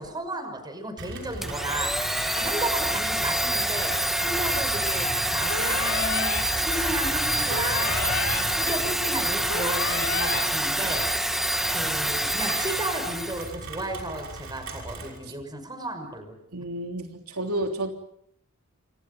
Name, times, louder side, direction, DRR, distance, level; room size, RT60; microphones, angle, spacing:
voice 1, 0.0-8.0 8.3-11.1 11.7-16.3, right 1 dB, 20° right, 7 dB, 5.7 m, -34 dB
Rain, 1.0-15.2, right 2 dB, 60° right, 6.1 m, -38 dB
Domestic sounds home sounds, 1.4-13.5, right 1 dB, ahead, 1.1 m, -26 dB
sound 1, 5.5-6.4 7.5-8.4 9.5-10.4, left 5 dB, 70° left, 3.5 m, -30 dB
voice 2, 16.5-17.9, right 1 dB, 90° right, 4 dB, 3.3 m, -31 dB
29.0 x 27.5 x 5.4 m, 0.70 s
head